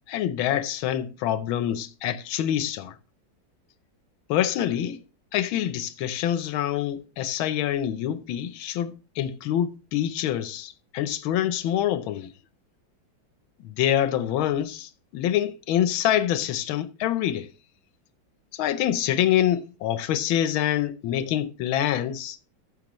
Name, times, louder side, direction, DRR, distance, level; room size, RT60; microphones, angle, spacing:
voice 1, 0.1-2.9 4.3-5.0 5.3-12.3 13.6-17.5 18.5-22.4, left 11 dB, 85° left, 1.5 m, -26 dB
14.0 x 6.6 x 3.0 m
omnidirectional pair, 2.2 m